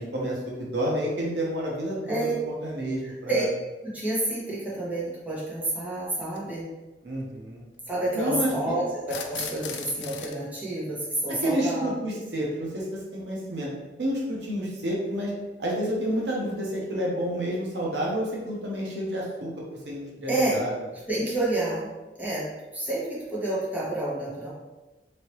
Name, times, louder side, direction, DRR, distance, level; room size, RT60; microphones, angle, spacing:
voice 1, 0.0-3.4 7.0-7.6 8.1-8.8 11.4-13.7 14.0-15.3 15.6-20.7, equal, 75° right, -3 dB, 0.8 m, -29 dB
voice 2, 3.0-3.4 3.9-6.7 7.9-12.2 20.3-20.6 21.1-21.9 22.2-22.4 22.7-24.5, right 2 dB, 10° right, -8 dB, 1.1 m, -29 dB
sound 1, 4.7-4.8 6.2-6.4 9.0-10.4, left 7 dB, 90° left, 0.3 m, -37 dB
3.1 x 2.8 x 3.0 m, 1.1 s
head